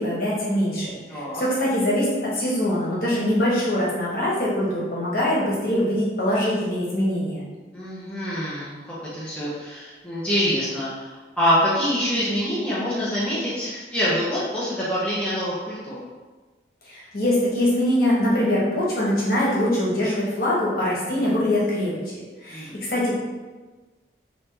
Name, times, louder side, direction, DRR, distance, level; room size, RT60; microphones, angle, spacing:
voice 1, 0.0-7.4 16.8-23.1, left 1 dB, 50° left, -7 dB, 1.2 m, -23 dB
voice 2, 1.1-1.4 7.7-16.0 22.5-22.7, equal, 5° left, -10 dB, 0.7 m, -25 dB
3.7 x 2.9 x 3.3 m, 1.3 s
head